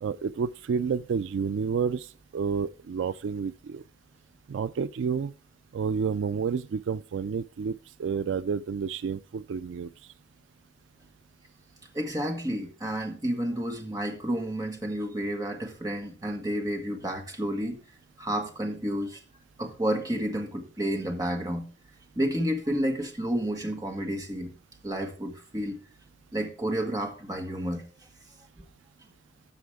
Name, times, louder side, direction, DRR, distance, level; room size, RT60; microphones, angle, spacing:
voice 1, 0.0-3.8 4.5-5.3 5.7-10.1, right 6 dB, 85° right, 0.3 m, -30 dB
voice 2, 11.9-17.8 18.2-19.2 19.6-21.7 22.1-24.5 24.8-25.8 26.3-27.8, right 1 dB, 20° right, 1.6 m, -30 dB
13.0 x 7.0 x 3.6 m
head